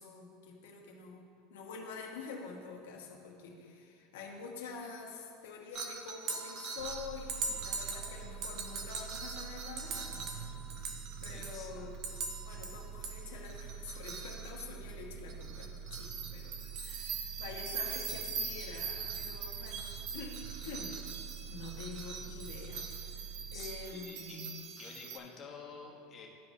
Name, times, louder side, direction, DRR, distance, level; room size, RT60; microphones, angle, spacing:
voice 1, 0.0-12.0 12.4-20.4 20.6-21.0 21.5-24.5, left 4 dB, 90° left, -1 dB, 1.2 m, -47 dB
sound 1, 5.7-11.7 11.9-14.9 15.3-25.2, right 5 dB, 50° right, 0.7 m, -42 dB
sound 2, 6.8-23.9, right 6 dB, 80° right, 0.3 m, -46 dB
voice 2, 11.2-12.2 23.5-24.5 24.7-26.3, left 5 dB, 30° left, -1 dB, 1.1 m, -50 dB
12.5 x 4.8 x 2.7 m, 2.6 s
supercardioid pair, 145°, 0 cm